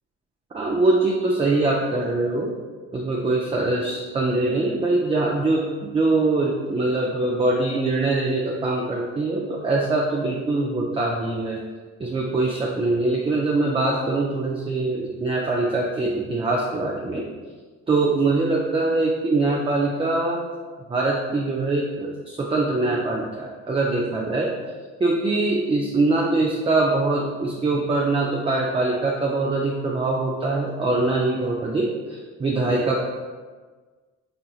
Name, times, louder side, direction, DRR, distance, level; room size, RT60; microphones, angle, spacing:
voice 1, 0.5-2.5 2.9-11.6 12.0-17.2 17.9-20.4 20.9-24.5 25.0-33.0, right 2 dB, 20° right, -2 dB, 0.4 m, -23 dB
4.2 x 2.6 x 2.3 m, 1.4 s
cardioid pair, 90°, 30 cm